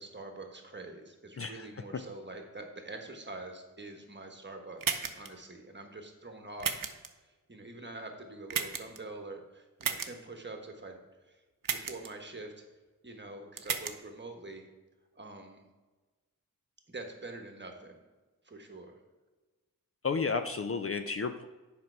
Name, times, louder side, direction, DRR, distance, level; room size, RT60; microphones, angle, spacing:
voice 1, 0.0-6.8 7.2-11.4 11.7-12.6 13.0-14.7 15.1-15.6 16.9-18.0 18.4-19.0, right 2 dB, 30° right, 4 dB, 1.3 m, -45 dB
voice 2, 1.4-1.7 20.0-21.4, left 5 dB, 40° left, 9 dB, 0.5 m, -32 dB
sound 1, 4.8-5.3 6.6-7.1 8.5-9.0 9.8-10.1 11.6-12.1 13.6-13.9, right 6 dB, 70° right, 0.7 m, -33 dB
7.8 x 5.3 x 4.6 m, 1.2 s
wide cardioid pair, 65°, 35 cm